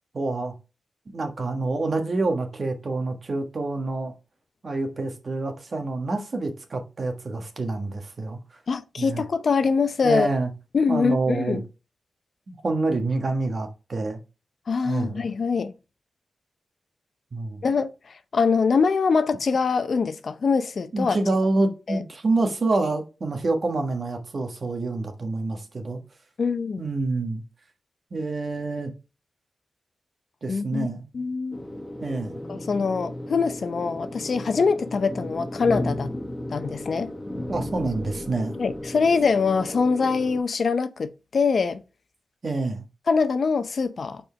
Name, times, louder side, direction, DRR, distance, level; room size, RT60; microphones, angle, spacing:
voice 1, 0.1-0.5 1.1-4.1 4.6-8.6 9.0-9.2 10.0-10.5 10.9-11.6 12.5-14.2 14.8-15.2 17.3-17.6 20.9-26.0 26.8-27.4 28.1-28.9 30.4-31.0 32.0-32.4 37.5-38.5 42.4-42.8, right 2 dB, 50° right, 1.4 m, -27 dB
voice 2, 8.7-10.3 10.7-11.6 14.7-15.7 17.6-17.9 18.3-21.2 21.9-22.0 26.4-26.8 30.5-30.9 31.1-31.6 32.5-36.1 36.5-37.1 38.5-41.8 43.1-44.2, left 5 dB, 65° left, 0.6 m, -23 dB
sound 1, 31.5-40.4, left 1 dB, 15° left, 1.1 m, -34 dB
5.3 x 4.4 x 5.6 m
cardioid pair, 80°, 0 cm